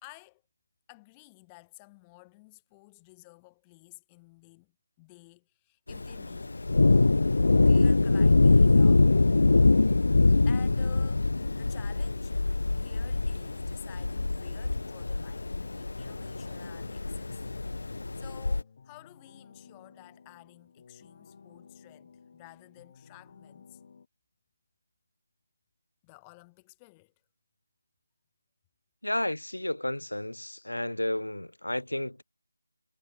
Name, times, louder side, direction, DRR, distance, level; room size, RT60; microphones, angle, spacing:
voice 1, 0.0-0.4 0.9-4.7 5.0-6.6 7.6-9.1 10.5-12.3 12.7-17.5 18.2-23.8 26.0-27.1, left 26 dB, 10° left, 2.3 m, -53 dB
Thunder, 5.9-18.6, left 3 dB, 60° left, 0.6 m, -24 dB
sound 1, 14.1-24.1, left 5 dB, 35° left, 7.4 m, -55 dB
voice 2, 29.0-32.2, left 1 dB, 90° left, 1.3 m, -32 dB
figure-of-eight pair, 165°, 0 cm